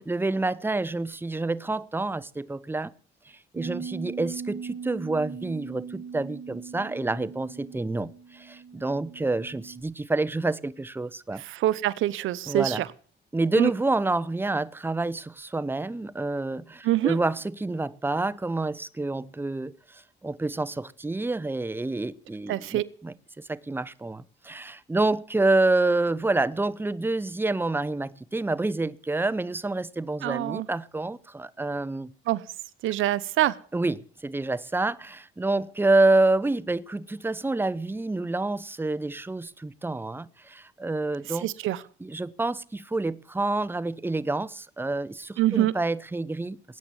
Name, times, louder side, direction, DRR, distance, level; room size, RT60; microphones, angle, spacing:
voice 1, 0.1-2.9 3.3-11.4 12.5-12.8 13.3-32.1 33.7-41.5 42.0-46.6, right 2 dB, 10° right, 0.9 m, -28 dB
Bass guitar, 3.6-9.8, right 6 dB, 50° right, 5.2 m, -40 dB
voice 2, 11.4-12.9 13.6-13.7 16.8-17.2 22.5-22.9 30.2-30.7 32.3-32.4 32.8-33.6 41.3-41.8 45.4-45.7, right 14 dB, 80° right, 0.9 m, -25 dB
20.5 x 9.2 x 7.1 m
cardioid pair, 90°, 20 cm